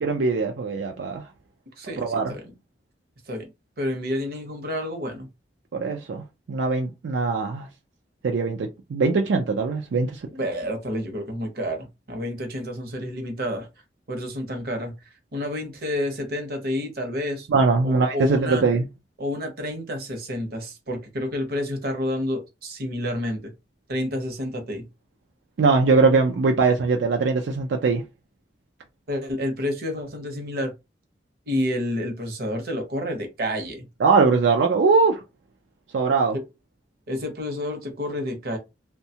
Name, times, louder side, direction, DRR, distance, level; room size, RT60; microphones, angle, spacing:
voice 1, 0.0-1.2 2.0-2.3 5.7-7.7 8.2-10.3 17.5-18.8 25.6-28.0 34.0-35.2 35.9-36.4, right 4 dB, 85° right, 0.4 m, -21 dB
voice 2, 1.8-2.4 3.3-3.5 3.8-5.3 10.4-13.7 14.1-14.9 15.3-17.5 17.8-18.6 19.2-23.5 23.9-24.8 29.1-30.7 31.5-33.9 36.3-36.4 37.1-38.6, left 1 dB, 55° right, 0.8 m, -29 dB
2.7 x 2.2 x 2.7 m
head